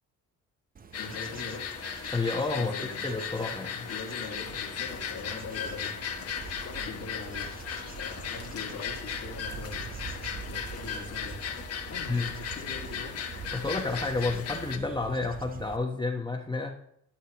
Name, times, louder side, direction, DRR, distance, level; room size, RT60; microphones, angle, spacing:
Bird / Insect / Wind, 0.7-15.8, right 5 dB, 30° right, 0.7 m, -45 dB
sound 1, 0.9-14.8, left 7 dB, 55° left, 1.2 m, -37 dB
voice 1, 1.0-1.7 2.5-3.0 3.9-6.0 6.3-7.5 7.9-9.9 10.4-11.5 11.9-13.1, left 4 dB, 75° left, -3 dB, 2.1 m, -42 dB
voice 2, 2.1-2.7 3.0-3.9 12.1-12.3 13.5-16.7, left 3 dB, 15° left, 0 dB, 1.0 m, -30 dB
11.5 x 5.6 x 3.0 m, 0.71 s
cardioid pair, 90°, 30 cm